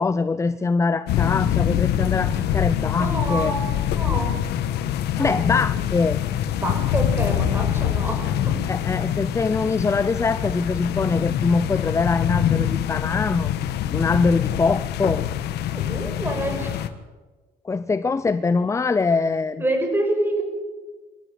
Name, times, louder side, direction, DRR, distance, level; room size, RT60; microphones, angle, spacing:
voice 1, 0.0-3.5 5.1-6.2 8.7-13.5 13.9-15.2 17.6-19.6, left 4 dB, 15° left, 13 dB, 0.6 m, -23 dB
sound 1, 1.1-16.9, left 11 dB, 75° left, 1.4 m, -24 dB
voice 2, 3.0-3.6 3.9-4.4 5.1-5.5 6.6-8.6 15.6-16.9 19.6-20.4, right 1 dB, 10° right, 4 dB, 6.8 m, -27 dB
25.0 x 14.0 x 8.5 m, 1.3 s
cardioid pair, 110°, 17 cm